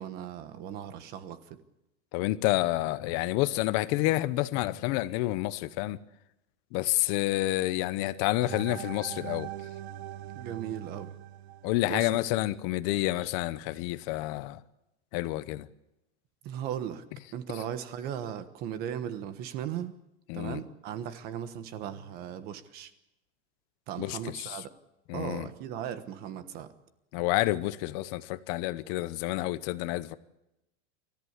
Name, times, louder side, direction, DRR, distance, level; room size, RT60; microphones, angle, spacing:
voice 1, 0.0-1.4 10.3-11.1 11.8-12.1 16.4-17.0 17.3-20.0 20.3-22.9 23.9-24.7 25.1-26.7, right 9 dB, 30° right, 1.3 m, -37 dB
voice 2, 2.1-6.0 6.7-9.5 11.6-14.6 15.1-15.7 20.3-20.6 24.0-24.6 25.1-25.5 27.1-30.1, left 17 dB, 35° left, 0.9 m, -29 dB
sound 1, 8.4-12.4, right 12 dB, 75° right, 1.3 m, -42 dB
28.5 x 14.5 x 8.2 m
supercardioid pair, 180°, 32 cm